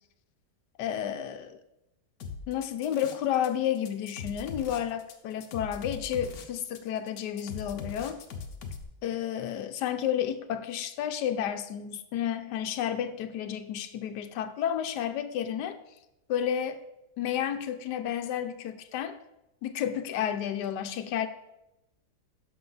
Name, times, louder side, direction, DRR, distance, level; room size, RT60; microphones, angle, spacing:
voice 1, 0.8-1.6 2.5-8.2 9.0-15.8 16.3-16.8 17.2-19.1 19.6-21.3, left 9 dB, 85° left, 8 dB, 1.3 m, -31 dB
sound 1, 2.2-3.5 3.8-8.8, left 5 dB, 65° left, 1.3 m, -40 dB
11.5 x 6.1 x 3.9 m, 0.90 s
omnidirectional pair, 1.8 m